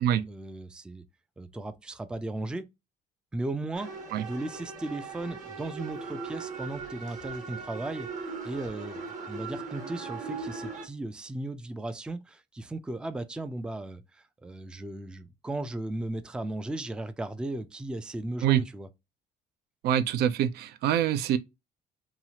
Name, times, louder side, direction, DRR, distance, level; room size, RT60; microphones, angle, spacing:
voice 1, 0.3-1.0 1.4-2.6 3.3-3.9 4.2-9.0 9.3-18.9, right 2 dB, 5° right, 0.3 m, -36 dB
sound 1, 3.7-10.9, right 4 dB, 45° right, 1.1 m, -39 dB
voice 2, 19.8-21.4, right 10 dB, 70° right, 0.4 m, -25 dB
2.9 x 2.4 x 2.7 m
cardioid pair, 110°, 17 cm